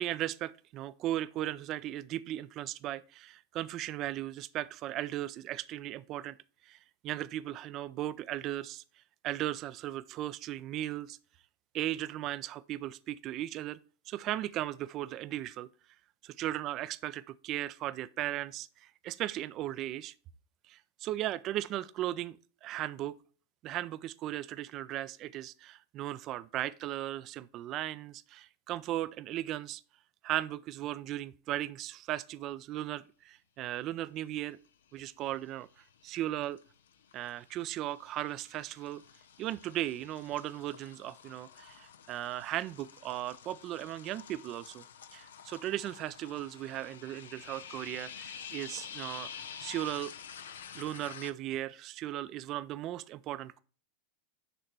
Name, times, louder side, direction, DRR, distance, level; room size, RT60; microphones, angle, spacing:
voice 1, 0.0-6.4 6.7-6.8 7.0-8.8 9.2-11.2 11.7-13.8 14.1-15.7 16.2-20.1 20.7-23.2 23.6-29.8 30.2-34.6 34.9-35.7 36.0-36.6 37.1-39.0 39.4-44.8 45.1-49.3 49.6-50.1 50.7-53.6, right 13 dB, 40° right, 0.4 m, -37 dB
sound 1, 35.0-35.5 35.8-51.3, left 8 dB, 75° left, 0.5 m, -49 dB
6.7 x 3.3 x 5.9 m
hypercardioid pair, 95°, 0 cm